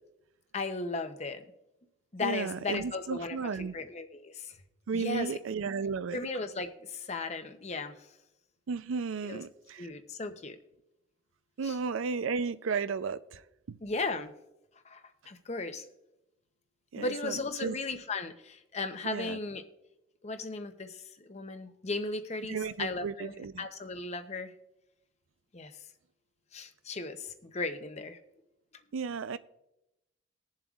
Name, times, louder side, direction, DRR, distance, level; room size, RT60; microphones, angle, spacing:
voice 1, 0.5-1.5 2.1-4.6 4.9-5.4 6.1-8.0 9.3-9.4 9.8-10.6 11.6-11.8 13.8-14.3 14.8-15.8 16.9-19.6 20.2-24.5 25.5-25.7 26.5-28.2, left 3 dB, 35° left, 9 dB, 0.7 m, -36 dB
voice 2, 2.2-3.7 4.9-6.2 8.7-9.9 11.6-13.4 13.7-13.8 16.9-17.7 19.0-19.4 22.5-23.7 28.9-29.4, right 5 dB, 80° right, 14 dB, 0.4 m, -34 dB
20.5 x 7.3 x 2.4 m, 0.88 s
head